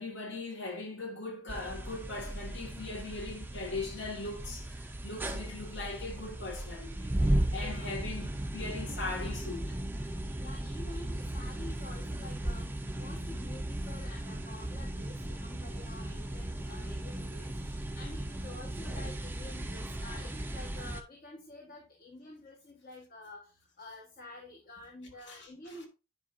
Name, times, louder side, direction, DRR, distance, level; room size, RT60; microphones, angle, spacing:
voice 1, 0.0-9.8 10.3-10.4 25.3-25.9, left 3 dB, 60° left, 2.0 m, -40 dB
sound 1, 1.5-21.0, right 1 dB, 10° right, 0.5 m, -36 dB
voice 2, 7.6-7.9 10.4-25.9, left 2 dB, 45° left, 1.4 m, -49 dB
9.6 x 5.2 x 2.6 m
head